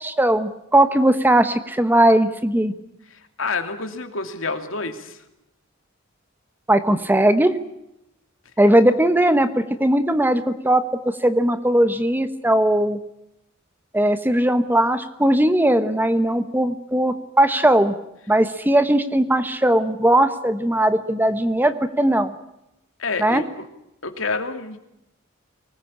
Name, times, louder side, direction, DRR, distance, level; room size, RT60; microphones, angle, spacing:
voice 1, 0.0-2.7 6.7-7.5 8.6-13.0 13.9-17.9 18.3-22.3 23.2-23.4, right 1 dB, 10° right, 11 dB, 1.0 m, -19 dB
voice 2, 3.1-5.2 23.0-23.7 24.0-24.8, left 4 dB, 75° left, 7 dB, 2.8 m, -28 dB
24.0 x 20.0 x 8.7 m, 0.84 s
head